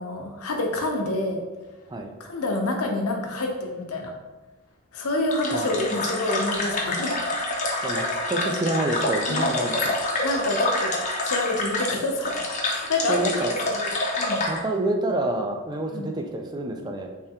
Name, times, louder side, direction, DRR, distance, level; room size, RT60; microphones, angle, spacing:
voice 1, 0.0-1.4 2.2-4.1 4.9-7.1 9.3-9.5 10.2-11.0 11.2-12.3 12.7-13.9 14.2-14.4 15.9-16.1, left 2 dB, 85° left, 2 dB, 0.7 m, -27 dB
sound 1, 5.3-14.6, left 2 dB, 35° left, 0.5 m, -27 dB
voice 2, 7.8-10.0 13.1-13.6 14.5-17.1, right 2 dB, 20° right, 3 dB, 0.3 m, -27 dB
3.5 x 3.3 x 2.7 m, 1.2 s
head